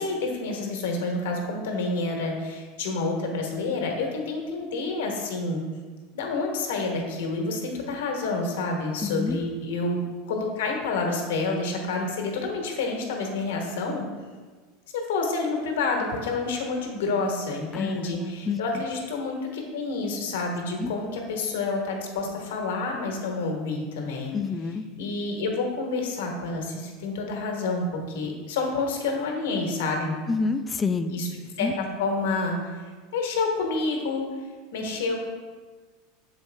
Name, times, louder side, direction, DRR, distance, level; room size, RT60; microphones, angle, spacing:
voice 1, 0.0-5.6 6.1-10.0 10.3-14.1 15.1-24.3 25.0-30.1 31.1-31.3 31.6-32.8 33.1-34.2 34.7-35.2, left 3 dB, 80° left, 1 dB, 1.2 m, -28 dB
voice 2, 9.0-9.4 17.7-18.6 20.8-20.9 24.3-24.8 30.3-31.1 31.6-31.7, left 4 dB, 20° left, 10 dB, 0.3 m, -28 dB
6.9 x 4.3 x 3.4 m, 1.5 s
supercardioid pair, 125°, 0 cm